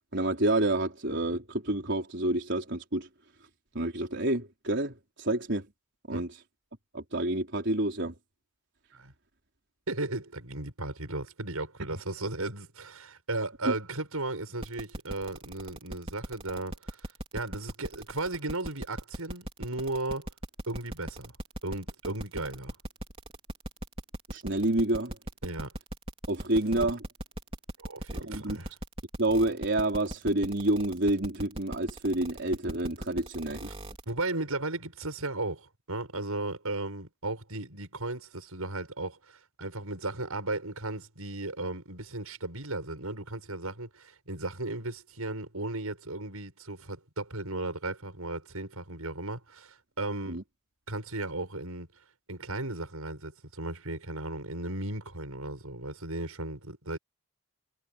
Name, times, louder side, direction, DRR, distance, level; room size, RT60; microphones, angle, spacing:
voice 1, 0.1-3.1 3.7-5.7 6.1-6.4 6.9-8.2 13.6-13.7 24.3-25.2 26.3-27.0 28.2-28.6 29.2-33.7 50.3-50.4, right 1 dB, 55° right, 4.4 m, -28 dB
voice 2, 9.9-17.0 17.3-20.3 20.7-21.3 21.6-22.8 25.4-25.7 27.8-28.7 34.1-50.4 50.9-51.9 52.3-57.0, right 2 dB, 90° right, 7.1 m, -35 dB
sound 1, 14.6-34.1, right 1 dB, 25° right, 4.1 m, -38 dB
head